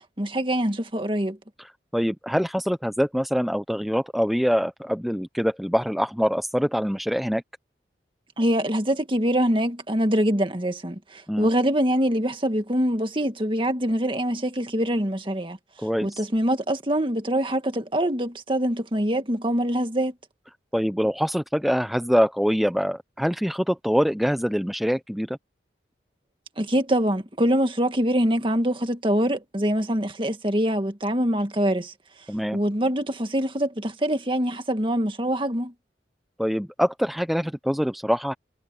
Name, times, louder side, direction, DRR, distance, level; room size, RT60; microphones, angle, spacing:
voice 1, 0.2-1.4 8.4-15.6 16.0-20.1 26.6-31.9 32.5-35.7, equal, 30° right, 1.9 m, -24 dB
voice 2, 1.6-7.4 11.3-11.5 15.8-16.2 20.7-25.4 32.3-32.6 36.4-38.3, equal, ahead, 0.6 m, -24 dB
head